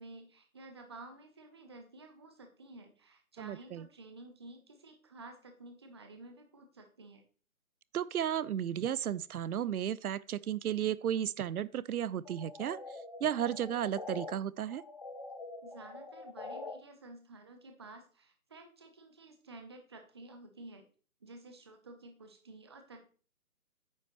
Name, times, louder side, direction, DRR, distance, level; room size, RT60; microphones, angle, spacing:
voice 1, 0.0-7.2 15.6-20.9 21.2-23.1, right 2 dB, 20° right, 0.6 m, -52 dB
voice 2, 3.4-3.9 7.9-12.8 13.2-14.8, right 10 dB, 80° right, 0.5 m, -34 dB
sound 1, 12.2-14.3 14.7-16.7, left 3 dB, 30° left, 0.5 m, -45 dB
9.1 x 6.1 x 3.0 m
figure-of-eight pair, 150°, 44 cm